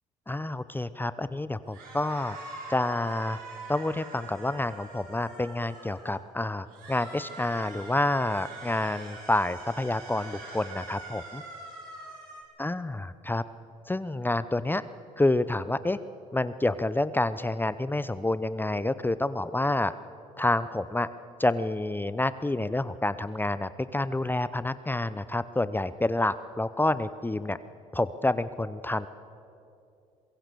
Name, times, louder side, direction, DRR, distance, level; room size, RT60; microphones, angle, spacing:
voice 1, 0.3-2.4 2.7-3.4 3.7-11.4 12.6-13.4 13.9-14.8 15.2-16.0 16.3-19.9 20.4-21.1 21.4-27.6 27.9-29.1, left 2 dB, 10° left, 14 dB, 0.8 m, -28 dB
sound 1, 1.7-6.2 6.7-12.4, right 3 dB, 75° right, 7.3 m, -44 dB
24.5 x 22.0 x 6.9 m, 2.6 s
hypercardioid pair, 60°, 16 cm